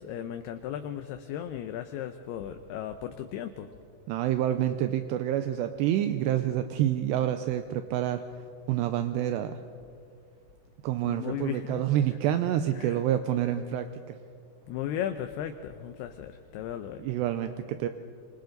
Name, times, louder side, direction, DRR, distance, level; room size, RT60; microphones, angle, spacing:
voice 1, 0.0-3.7 11.0-11.8 12.8-13.0 14.7-17.0, left 10 dB, 75° left, 8 dB, 2.5 m, -36 dB
voice 2, 4.1-8.2 8.7-9.6 10.8-14.2 17.0-17.9, right 11 dB, 80° right, 8 dB, 2.7 m, -28 dB
27.0 x 26.5 x 4.0 m, 2.3 s
omnidirectional pair, 5.1 m